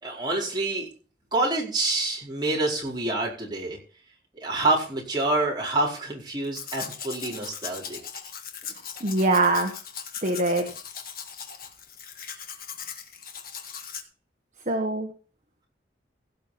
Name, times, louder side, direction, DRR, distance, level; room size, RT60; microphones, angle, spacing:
voice 1, 0.0-0.9 1.3-3.8 4.4-8.0, right 2 dB, 25° right, -3 dB, 4.7 m, -27 dB
Domestic sounds home sounds, 6.4-14.0, left 7 dB, 55° left, 1.5 m, -39 dB
voice 2, 9.0-9.7 10.2-10.7 14.7-15.1, right 2 dB, 45° right, 3 dB, 1.4 m, -23 dB
16.5 x 5.7 x 5.8 m, 0.38 s
head